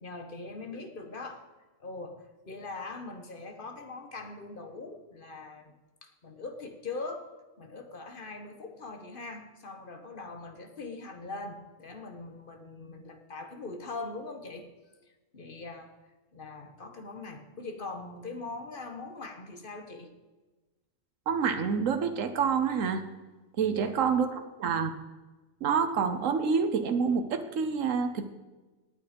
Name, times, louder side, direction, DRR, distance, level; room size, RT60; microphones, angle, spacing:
voice 1, 0.0-1.5 1.8-5.7 6.0-7.3 7.6-14.7 15.3-16.0 16.3-20.1 23.6-24.0, left 3 dB, 45° left, 6 dB, 1.6 m, -41 dB
voice 2, 21.3-23.0 23.6-24.9 25.6-28.3, right 6 dB, 85° right, 8 dB, 1.3 m, -27 dB
18.0 x 9.3 x 5.2 m, 1.2 s
omnidirectional pair, 1.3 m